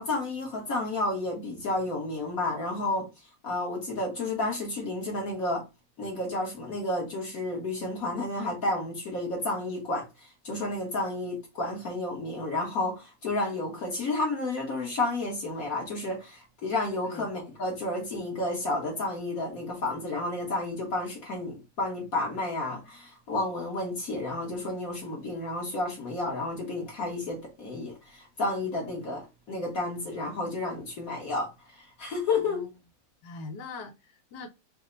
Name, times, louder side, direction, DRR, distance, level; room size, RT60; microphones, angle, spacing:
voice 1, 0.0-3.1 3.4-5.6 6.0-32.7, left 2 dB, 55° left, 1.5 m, -31 dB
voice 2, 32.4-32.7 33.2-34.5, left 3 dB, 70° left, 1.4 m, -42 dB
5.4 x 2.1 x 3.8 m
omnidirectional pair, 2.0 m